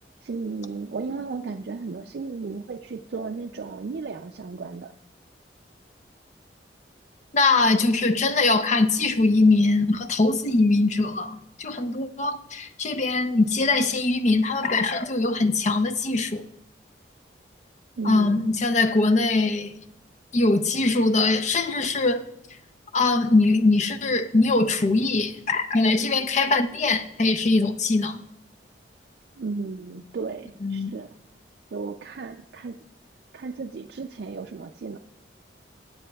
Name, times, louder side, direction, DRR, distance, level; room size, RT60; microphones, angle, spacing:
voice 1, 0.2-4.9 18.0-18.4 29.4-31.1 31.7-32.8 33.3-35.0, right 4 dB, 60° right, 0.4 m, -34 dB
voice 2, 7.3-16.5 18.1-19.7 20.3-22.3 22.9-28.2 30.6-31.0, left 3 dB, 40° left, 0.5 m, -22 dB
21.5 x 8.4 x 2.3 m
head